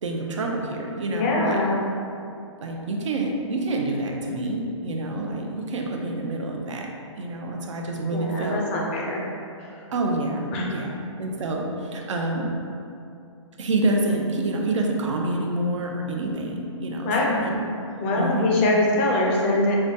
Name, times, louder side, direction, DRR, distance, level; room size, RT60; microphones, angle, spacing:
voice 1, 0.0-1.6 2.6-8.6 9.9-10.9 11.2-12.5 13.6-17.6 18.1-18.7, right 2 dB, 70° right, 1 dB, 0.6 m, -27 dB
voice 2, 1.1-1.8 8.1-9.2 9.6-9.8 10.5-10.7 17.0-17.3 18.0-19.7, left 2 dB, 25° left, -2 dB, 0.4 m, -23 dB
4.8 x 2.2 x 2.6 m, 2.5 s
hypercardioid pair, 150°, 16 cm